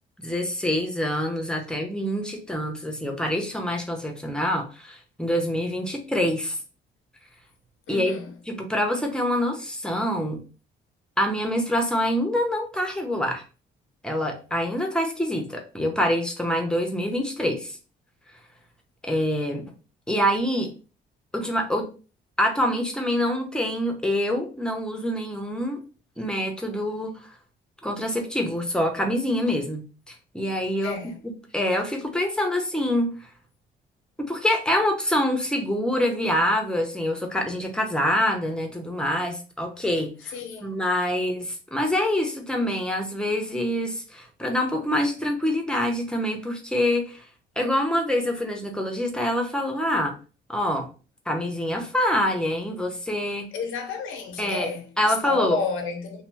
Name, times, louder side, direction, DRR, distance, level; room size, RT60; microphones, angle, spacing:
voice 1, 0.2-6.6 7.9-8.1 8.5-10.4 11.2-13.4 14.0-17.8 19.0-19.6 20.1-20.7 21.3-21.9 22.4-25.8 26.2-27.3 27.8-31.0 31.2-33.1 34.3-40.3 40.6-47.2 47.6-50.1 50.5-50.9 51.3-53.5 54.4-54.7 55.0-55.6, left 1 dB, 5° left, 0.8 m, -25 dB
voice 2, 7.9-8.4 30.8-31.2 40.2-40.8 53.5-56.2, left 5 dB, 85° left, 0.7 m, -31 dB
2.9 x 2.2 x 3.3 m
cardioid pair, 90°, 20 cm